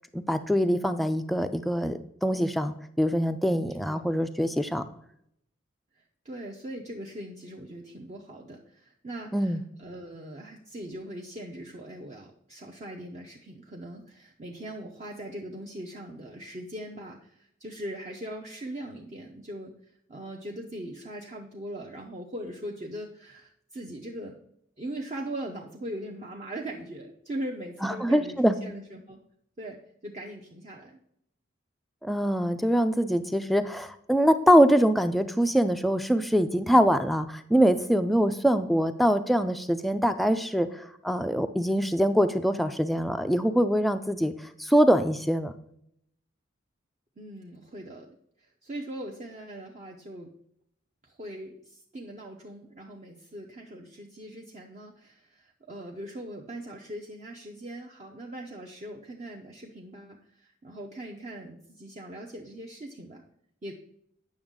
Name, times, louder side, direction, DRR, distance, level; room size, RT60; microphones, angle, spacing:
voice 1, 0.1-4.8 9.3-9.6 27.8-28.6 32.0-45.5, equal, ahead, 8 dB, 0.3 m, -24 dB
voice 2, 6.0-24.4 24.8-29.2 29.6-31.0 47.2-50.3 51.0-63.2 63.6-63.7, right 1 dB, 35° right, -1 dB, 0.6 m, -40 dB
8.7 x 6.2 x 3.7 m, 0.73 s
head